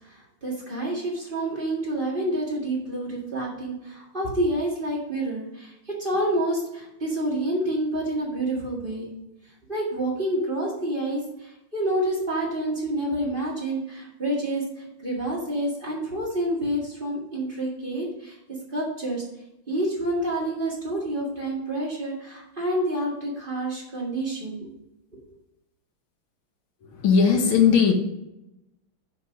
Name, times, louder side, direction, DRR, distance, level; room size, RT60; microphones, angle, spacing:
voice 1, 0.0-9.1 9.7-19.2 19.7-24.7, right 1 dB, 25° right, -4 dB, 2.0 m, -28 dB
voice 2, 27.0-27.9, left 6 dB, 75° left, 3 dB, 1.9 m, -17 dB
6.9 x 5.2 x 5.1 m, 0.88 s
omnidirectional pair, 2.3 m